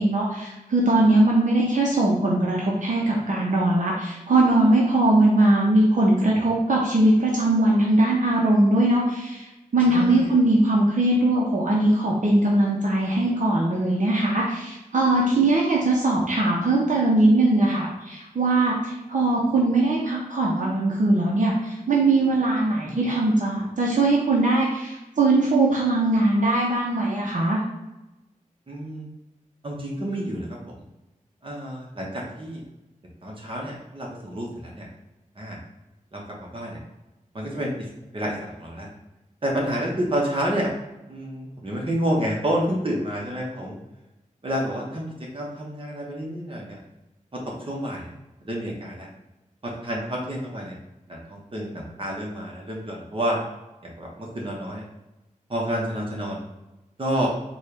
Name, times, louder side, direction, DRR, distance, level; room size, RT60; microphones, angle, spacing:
voice 1, 0.0-9.5 9.7-27.6, right 2 dB, 65° right, -4 dB, 0.7 m, -20 dB
voice 2, 9.9-10.3 22.8-23.1 28.7-29.1 29.6-30.8 31.4-32.6 33.2-34.9 35.4-35.6 36.1-36.8 37.3-38.9 39.4-40.7 41.1-43.8 44.4-46.8 47.3-48.1 48.4-49.1 49.6-50.7 51.1-53.4 53.8-54.8 55.5-56.4 57.0-57.3, equal, 40° right, -3 dB, 1.0 m, -29 dB
4.2 x 2.3 x 3.2 m, 0.99 s
wide cardioid pair, 85°, 14 cm